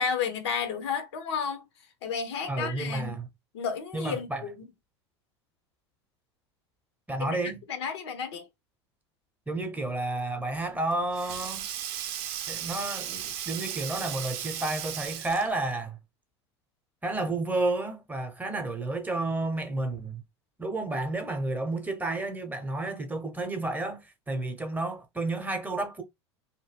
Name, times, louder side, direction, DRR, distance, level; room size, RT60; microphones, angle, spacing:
voice 1, 0.0-1.6 2.0-3.1 3.5-4.5 7.2-7.3 7.7-8.5, left 6 dB, 70° left, 0.8 m, -32 dB
voice 2, 2.5-3.3 3.9-4.4 7.1-7.6 9.5-11.7 12.5-16.0 17.0-20.2 20.6-26.0, right 2 dB, 10° right, 0.8 m, -31 dB
Sink (filling or washing), 10.5-15.7, right 10 dB, 60° right, 0.5 m, -36 dB
2.8 x 2.2 x 3.2 m
hypercardioid pair, 80°, 14 cm